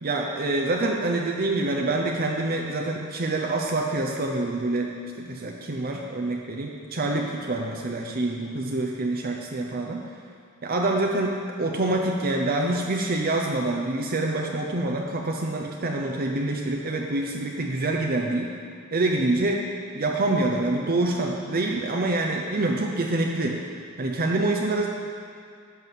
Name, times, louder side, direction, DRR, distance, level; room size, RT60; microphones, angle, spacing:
voice 1, 0.0-10.0 10.6-18.5 18.9-19.6 19.9-23.6 24.0-24.9, right 2 dB, 45° right, 1 dB, 0.7 m, -26 dB
11.0 x 6.2 x 7.5 m, 2.3 s
head